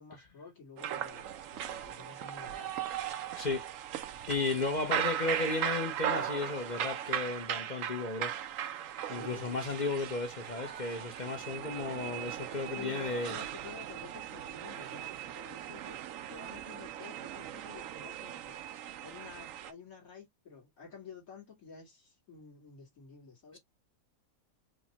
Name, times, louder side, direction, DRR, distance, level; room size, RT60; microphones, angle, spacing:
voice 1, 0.0-2.7 9.1-9.6 12.7-18.6 19.0-23.6, left 6 dB, 75° left, 2.2 m, -50 dB
sound 1, 0.8-19.7, right 10 dB, 70° right, 0.9 m, -38 dB
voice 2, 3.3-3.7 4.3-8.3 9.1-13.4 23.5-23.6, left 3 dB, 40° left, 0.7 m, -34 dB
5.0 x 2.1 x 2.8 m
omnidirectional pair, 1.5 m